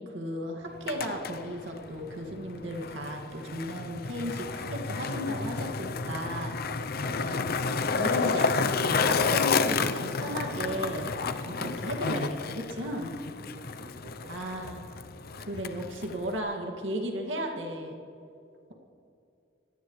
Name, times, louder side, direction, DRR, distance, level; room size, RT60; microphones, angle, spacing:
voice 1, 0.0-6.5 7.2-7.5 7.9-11.1 11.4-13.1 14.3-14.9 15.4-17.9, equal, 80° right, 1 dB, 2.1 m, -35 dB
Skateboard, 0.7-16.4, left 4 dB, 55° left, 0.7 m, -31 dB
voice 2, 7.0-7.8 11.4-11.6 13.3-14.3 14.6-14.7, right 1 dB, 65° right, -1 dB, 3.0 m, -51 dB
25.5 x 17.5 x 3.2 m, 2.6 s
head